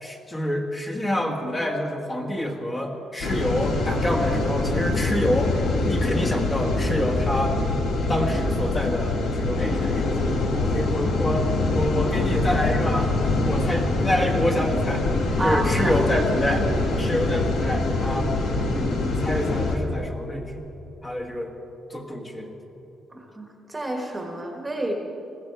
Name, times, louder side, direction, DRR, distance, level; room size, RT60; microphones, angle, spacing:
voice 1, 0.0-7.6 8.1-10.1 10.5-13.1 13.5-15.1 15.4-16.7 17.0-18.3 18.7-20.7 21.0-21.5 21.9-22.5, left 1 dB, 20° left, 1 dB, 1.5 m, -27 dB
sound 1, 3.2-19.8, left 2 dB, 75° left, 1.9 m, -24 dB
voice 2, 15.4-16.0 23.1-24.9, right 1 dB, 15° right, 2 dB, 1.5 m, -29 dB
20.5 x 15.0 x 4.7 m, 3.0 s
cardioid pair, 140°, 0 cm